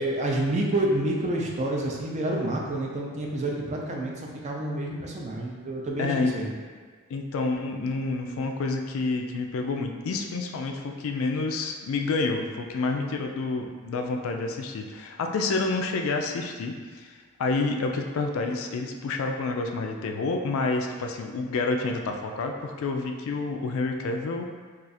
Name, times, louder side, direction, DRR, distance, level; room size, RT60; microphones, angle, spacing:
voice 1, 0.0-6.5, right 1 dB, 30° right, -1 dB, 0.4 m, -28 dB
voice 2, 6.0-6.3 7.1-24.4, left 3 dB, 65° left, 3 dB, 0.3 m, -29 dB
2.4 x 2.4 x 4.0 m, 1.5 s
head